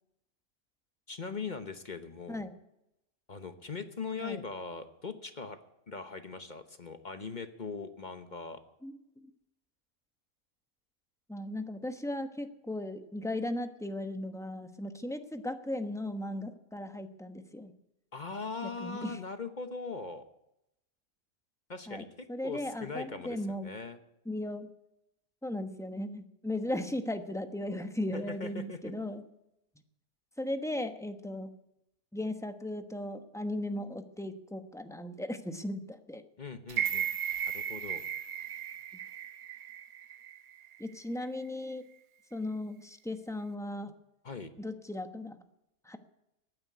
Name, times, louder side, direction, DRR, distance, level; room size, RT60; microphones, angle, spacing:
voice 1, 1.1-2.4 3.3-5.6 5.9-8.6 18.1-20.2 21.7-22.1 22.4-24.0 28.1-28.9 36.4-37.1 37.5-38.0 44.2-44.5, left 4 dB, 35° left, 9 dB, 1.0 m, -40 dB
voice 2, 8.8-9.3 11.3-17.7 18.6-19.2 21.9-23.7 24.2-24.7 25.4-29.2 30.4-31.5 32.1-36.2 38.9-39.0 40.8-41.9 42.3-44.0 44.6-45.4 45.8-46.0, left 1 dB, ahead, 7 dB, 0.9 m, -37 dB
sound 1, 36.7-40.8 41.2-41.3, right 9 dB, 80° right, 1.3 m, -36 dB
15.5 x 9.5 x 9.4 m, 0.86 s
omnidirectional pair, 1.5 m